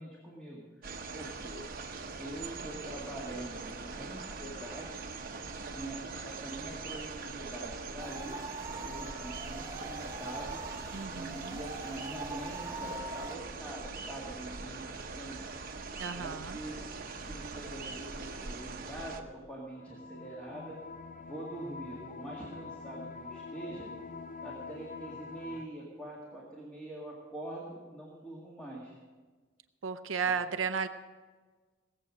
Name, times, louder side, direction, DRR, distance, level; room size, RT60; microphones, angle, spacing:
voice 1, 0.0-1.6 2.1-4.9 5.7-10.6 11.1-15.5 16.1-20.8 21.3-23.9 24.4-29.0, right 1 dB, 5° left, -4 dB, 2.0 m, -44 dB
sound 1, 0.8-19.2, right 4 dB, 50° right, 1.0 m, -42 dB
sound 2, 8.0-13.3, right 2 dB, 20° right, 1.1 m, -43 dB
voice 2, 10.9-11.6 16.0-16.6 29.8-30.9, right 6 dB, 75° right, 9 dB, 0.6 m, -34 dB
sound 3, 19.8-25.7, left 4 dB, 40° left, 0.6 m, -45 dB
18.5 x 7.7 x 6.2 m, 1.4 s
head